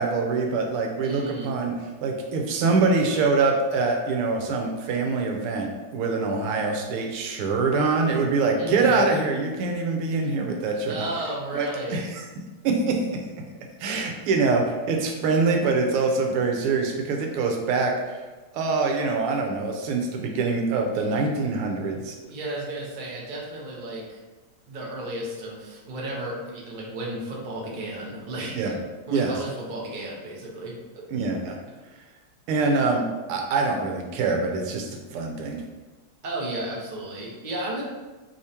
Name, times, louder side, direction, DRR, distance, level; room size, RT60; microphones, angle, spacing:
voice 1, 0.0-1.7 2.0-11.1 11.5-12.2 12.6-13.0 13.8-18.2 18.5-22.1 28.5-28.8 29.1-29.3 31.1-31.6 32.5-33.0 33.3-35.6, right 4 dB, 90° right, 2 dB, 1.6 m, -24 dB
voice 2, 1.0-1.5 8.6-9.0 10.9-12.0 21.0-21.1 22.2-24.2 24.7-28.7 29.1-30.7 36.2-37.8, right 1 dB, 70° right, -3 dB, 0.4 m, -33 dB
4.9 x 3.6 x 2.8 m, 1.2 s
omnidirectional pair, 2.4 m